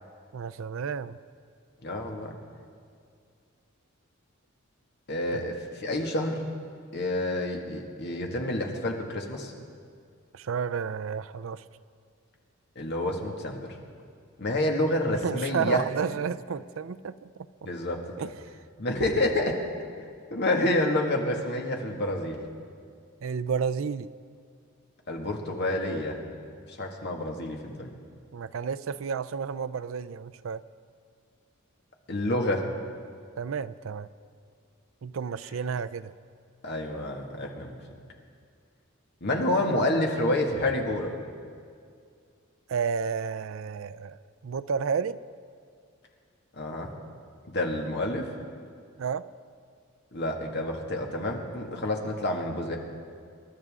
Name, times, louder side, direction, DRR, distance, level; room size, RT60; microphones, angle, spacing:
voice 1, 0.3-1.2 5.3-5.4 10.3-11.6 15.1-17.3 18.2-18.6 23.2-24.1 28.3-30.6 33.3-34.1 35.0-36.1 42.7-45.2 49.0-49.2, right 6 dB, 70° right, 14 dB, 0.4 m, -31 dB
voice 2, 1.8-2.3 5.1-5.5 5.8-6.4 6.9-9.5 12.8-13.6 14.4-15.8 17.6-18.0 18.8-19.6 20.3-22.4 25.1-26.2 26.7-27.9 32.1-32.7 36.6-37.8 39.2-41.2 46.6-46.9 47.5-48.3 50.1-52.8, left 1 dB, 55° left, 1 dB, 1.9 m, -28 dB
27.5 x 12.0 x 3.7 m, 2.3 s
head